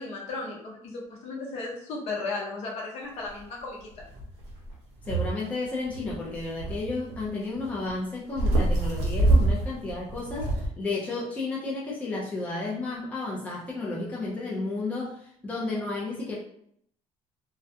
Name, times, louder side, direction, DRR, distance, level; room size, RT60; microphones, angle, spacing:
voice 1, 0.0-4.0, left 3 dB, 60° left, -2 dB, 0.8 m, -35 dB
sound 1, 3.4-3.5 4.0-5.4 5.6-7.9 8.3-10.7, right 2 dB, 65° right, 0.7 m, -26 dB
voice 2, 5.0-16.4, left 3 dB, 10° left, -5 dB, 0.4 m, -32 dB
2.3 x 2.1 x 2.6 m, 0.68 s
cardioid pair, 170°, 12 cm